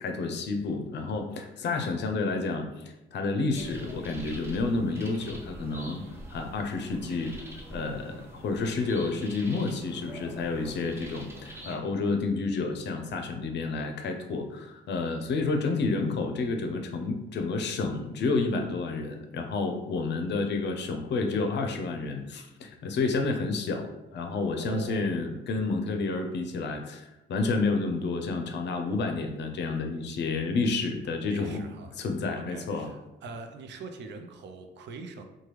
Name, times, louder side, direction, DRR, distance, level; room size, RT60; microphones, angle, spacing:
voice 1, 0.0-6.0 6.3-7.3 7.7-31.6 32.0-32.9, left 3 dB, 60° left, 5 dB, 0.5 m, -30 dB
sound 1, 3.5-11.8, equal, 10° right, 0.7 m, -45 dB
voice 2, 24.5-25.1 31.3-32.0 32.3-35.2, right 4 dB, 65° right, 5 dB, 0.5 m, -43 dB
3.2 x 2.2 x 3.0 m, 1.0 s
cardioid pair, 90°, 20 cm